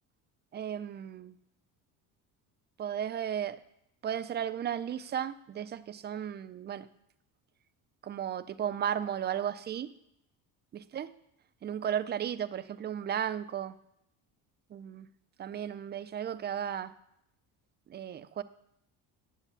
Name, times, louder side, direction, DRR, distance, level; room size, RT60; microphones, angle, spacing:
voice 1, 0.5-1.3 2.8-3.6 4.0-6.9 8.0-9.9 10.9-11.1 11.6-13.7 14.7-15.1 15.4-16.9 17.9-18.4, right 9 dB, 25° right, 15 dB, 0.4 m, -34 dB
8.4 x 8.0 x 8.1 m, 0.78 s
cardioid pair, 140°, 38 cm